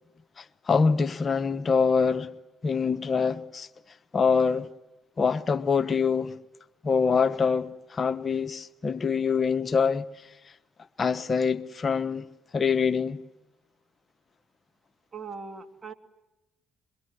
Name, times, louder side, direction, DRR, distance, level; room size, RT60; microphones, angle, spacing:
voice 1, 0.4-2.3 2.6-3.7 4.1-4.7 5.2-6.3 6.8-10.1 11.0-12.2 12.5-13.2, left 5 dB, 40° left, 1.1 m, -25 dB
voice 2, 15.1-15.9, right 5 dB, 35° right, 2.9 m, -40 dB
26.0 x 22.5 x 9.8 m
hypercardioid pair, 60°, 0 cm